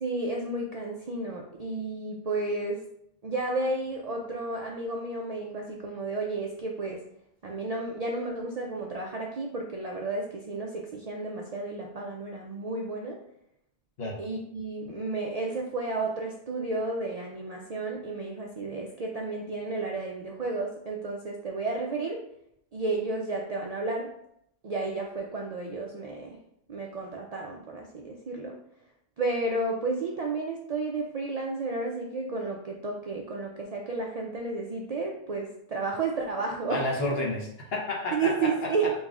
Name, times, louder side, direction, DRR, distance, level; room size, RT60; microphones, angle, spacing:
voice 1, 0.0-2.8 3.2-7.0 7.4-13.2 14.2-22.2 22.7-24.1 24.6-26.4 26.7-28.6 29.2-36.8 38.1-38.9, right 3 dB, 55° right, 0 dB, 0.4 m, -32 dB
voice 2, 36.7-38.9, left 2 dB, 65° left, -2 dB, 1.2 m, -31 dB
5.3 x 3.0 x 2.4 m, 0.74 s
omnidirectional pair, 1.1 m